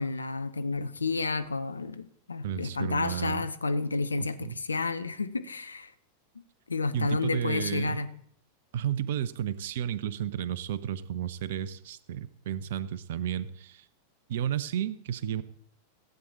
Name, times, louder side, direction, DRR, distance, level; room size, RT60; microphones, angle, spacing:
voice 1, 0.0-5.9 6.7-8.1, left 3 dB, 75° left, 12 dB, 0.7 m, -30 dB
voice 2, 2.4-3.5 4.2-4.5 6.9-8.0 8.7-13.8 14.3-15.4, right 10 dB, 55° right, 16 dB, 0.7 m, -32 dB
15.5 x 8.9 x 4.2 m, 0.63 s
figure-of-eight pair, 90°, 0 cm